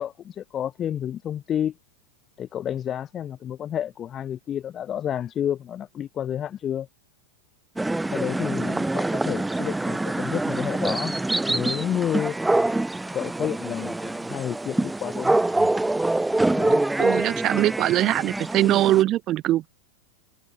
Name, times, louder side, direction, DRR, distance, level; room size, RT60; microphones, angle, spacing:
voice 1, 0.0-1.7 2.4-6.9 8.1-11.1 11.5-12.4 13.1-15.7 16.6-16.8, left 10 dB, 25° left, 2.5 m, -30 dB
sound 1, 7.8-19.0, right 2 dB, 5° right, 3.9 m, -25 dB
voice 2, 17.0-19.7, right 14 dB, 35° right, 4.2 m, -22 dB
figure-of-eight pair, 90°, 0 cm